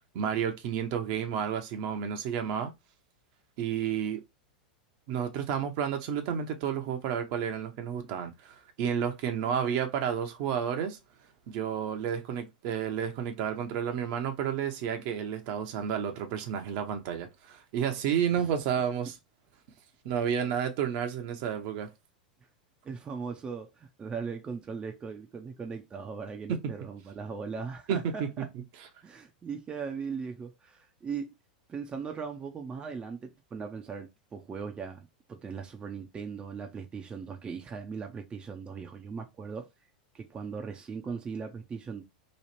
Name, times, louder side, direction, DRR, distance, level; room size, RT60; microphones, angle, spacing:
voice 1, 0.1-2.7 3.6-4.2 5.1-11.0 11.5-19.2 20.0-21.9 26.5-26.6 27.9-28.1, right 8 dB, 55° right, 0.9 m, -31 dB
voice 2, 22.8-28.5 29.0-31.3 31.7-39.7 40.1-42.0, right 5 dB, 20° right, 0.6 m, -39 dB
3.1 x 2.4 x 4.3 m
hypercardioid pair, 100°, 5 cm